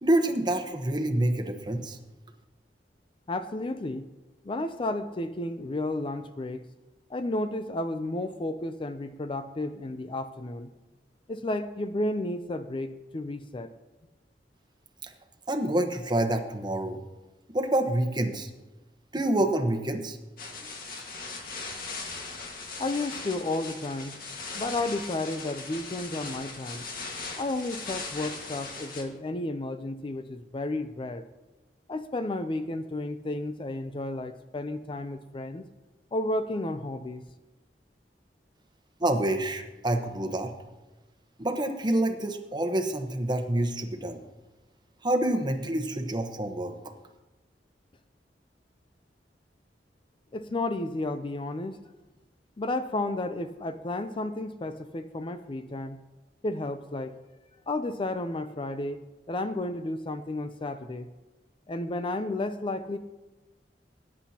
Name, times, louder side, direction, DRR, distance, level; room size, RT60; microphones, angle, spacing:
voice 1, 0.0-2.0 15.0-15.1 15.5-17.0 17.5-18.5 19.1-20.2 39.0-40.5 41.4-44.2 45.0-46.7, right 1 dB, 25° right, 5 dB, 1.0 m, -27 dB
voice 2, 3.3-4.1 4.4-6.6 7.1-10.7 11.3-13.7 22.8-24.2 24.5-26.9 27.4-31.2 31.9-35.6 36.1-37.2 50.3-51.8 52.6-56.0 56.4-57.2 57.7-59.0 59.3-61.1 61.7-63.0, left 2 dB, 30° left, 10 dB, 0.5 m, -32 dB
sound 1, 20.4-29.0, left 3 dB, 55° left, 1.7 m, -39 dB
20.0 x 10.0 x 2.9 m, 1.1 s
head